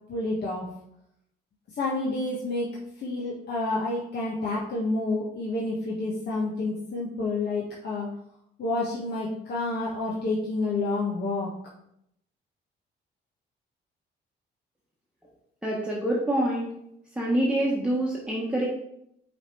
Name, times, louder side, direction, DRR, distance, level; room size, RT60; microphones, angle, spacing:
voice 1, 0.1-0.7 1.7-8.1 8.6-11.5, left 2 dB, 55° left, -5 dB, 1.4 m, -29 dB
voice 2, 15.6-16.7 17.2-18.7, right 1 dB, 5° right, -5 dB, 1.2 m, -26 dB
5.8 x 3.6 x 4.5 m, 0.75 s
cardioid pair, 90°, 20 cm